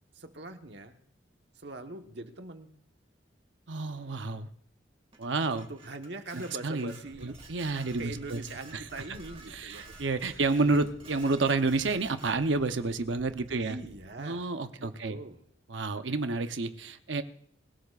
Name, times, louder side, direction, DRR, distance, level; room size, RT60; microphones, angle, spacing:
voice 1, 0.1-1.0 1.6-2.7 5.5-7.3 8.0-9.9 10.3-10.8 13.5-14.5 14.8-15.4, right 2 dB, 65° right, 5 dB, 1.3 m, -42 dB
voice 2, 3.7-4.5 5.2-5.7 6.3-6.9 7.2-8.4 8.7-8.8 9.5-13.8 14.2-15.2 15.7-17.2, right 3 dB, 85° right, 9 dB, 0.8 m, -30 dB
Dishes pots and pans, 5.1-12.8, right 3 dB, 30° right, 2.1 m, -53 dB
Purr, 7.0-14.0, equal, 5° right, 2.9 m, -54 dB
26.5 x 16.5 x 2.5 m, 0.66 s
head